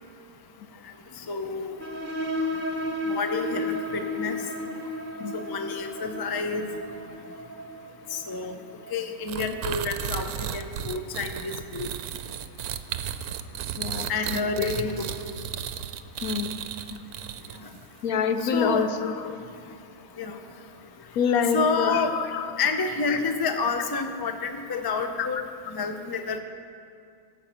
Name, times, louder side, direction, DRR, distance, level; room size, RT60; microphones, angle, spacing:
voice 1, 1.3-1.7 3.1-4.5 5.3-6.7 8.1-8.6 8.9-11.9 14.1-15.1 18.4-18.8 20.2-20.4 21.5-22.2 22.6-25.4 25.7-26.4, left 4 dB, 35° left, 6 dB, 0.3 m, -29 dB
sound 1, 1.8-9.1, left 1 dB, 40° right, 1.0 m, -33 dB
sound 2, 9.3-17.8, right 9 dB, 80° right, 1.1 m, -34 dB
voice 2, 13.8-14.7 16.2-16.6 16.9-17.0 18.0-19.4 21.1-22.6 23.1-23.2 25.2-25.4, left 6 dB, 75° left, 9 dB, 1.1 m, -27 dB
13.0 x 6.4 x 8.3 m, 2.4 s
omnidirectional pair, 1.6 m